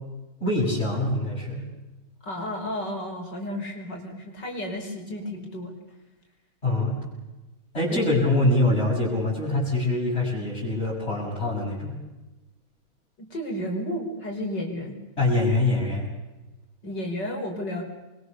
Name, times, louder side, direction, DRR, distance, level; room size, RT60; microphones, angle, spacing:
voice 1, 0.4-1.6 6.6-7.0 7.7-12.0 15.2-16.1, left 2 dB, 30° left, -8 dB, 7.7 m, -24 dB
voice 2, 2.2-5.7 7.9-8.1 13.2-15.0 16.8-17.8, left 1 dB, 55° left, 2 dB, 5.8 m, -32 dB
28.5 x 23.5 x 6.9 m, 1.1 s
omnidirectional pair, 2.3 m